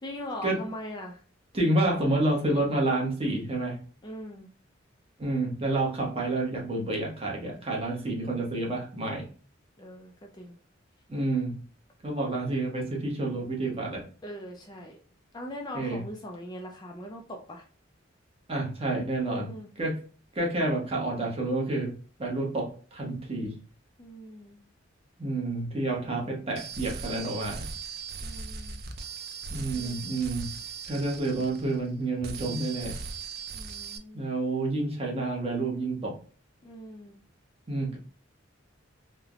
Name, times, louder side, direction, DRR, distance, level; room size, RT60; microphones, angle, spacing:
voice 1, 0.0-1.2 4.0-4.5 9.8-10.6 14.2-15.0 15.3-17.6 19.2-19.7 24.0-24.6 28.2-28.8 29.6-30.0 33.5-34.3 36.6-37.2, equal, 20° left, 1 dB, 0.4 m, -41 dB
voice 2, 1.5-3.8 5.2-9.3 11.1-11.6 12.0-14.1 15.7-16.0 18.5-19.5 19.8-20.0 20.3-23.5 25.2-27.7 29.5-30.5 30.9-33.0 34.1-36.2 37.7-38.0, right 2 dB, 30° right, -1 dB, 0.8 m, -29 dB
sound 1, 26.6-31.9 32.2-34.0, right 5 dB, 50° right, 0.4 m, -39 dB
3.1 x 2.0 x 2.4 m, 0.39 s
head